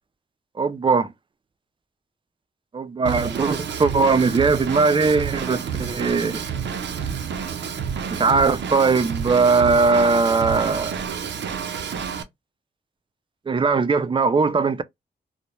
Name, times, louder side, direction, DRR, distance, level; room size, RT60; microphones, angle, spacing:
voice 1, 0.6-1.1 2.7-6.4 8.1-11.0 13.5-14.8, right 4 dB, 30° right, 0.4 m, -20 dB
Drum kit / Drum, 3.1-12.2, right 7 dB, 85° right, 0.5 m, -29 dB
2.1 x 2.1 x 2.9 m
cardioid pair, 60°, 18 cm